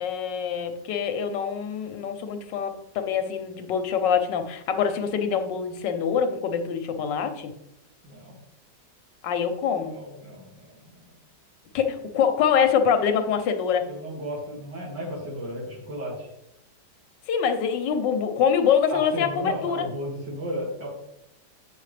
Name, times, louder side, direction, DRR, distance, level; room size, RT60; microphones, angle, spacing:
voice 1, 0.0-7.5 9.2-10.0 11.7-13.9 17.3-19.9, left 7 dB, 80° left, 8 dB, 1.4 m, -25 dB
voice 2, 8.0-8.4 9.9-10.6 13.9-16.3 18.9-20.9, equal, 70° right, -3 dB, 2.9 m, -34 dB
8.5 x 6.5 x 3.3 m, 0.83 s
omnidirectional pair, 1.9 m